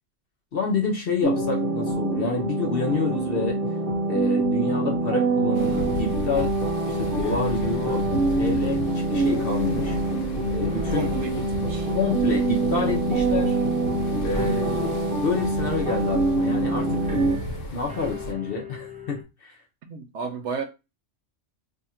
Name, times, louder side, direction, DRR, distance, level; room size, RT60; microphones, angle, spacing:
voice 1, 0.5-3.6 4.0-6.5 6.9-8.1 8.4-10.0 10.5-11.1 11.9-13.5 14.2-14.9 15.2-17.1 17.7-19.6, left 4 dB, 55° left, 0.8 m, -28 dB
sound 1, 1.2-17.4, right 2 dB, 45° right, 1.0 m, -25 dB
sound 2, 5.5-18.3, left 1 dB, 80° left, 1.0 m, -34 dB
sound 3, 7.2-10.4 10.6-19.2, left 5 dB, 10° right, 0.3 m, -43 dB
voice 2, 10.9-11.9 13.4-13.8 14.3-14.6 19.9-20.6, right 5 dB, 70° right, 0.9 m, -34 dB
2.8 x 2.4 x 4.2 m
omnidirectional pair, 1.3 m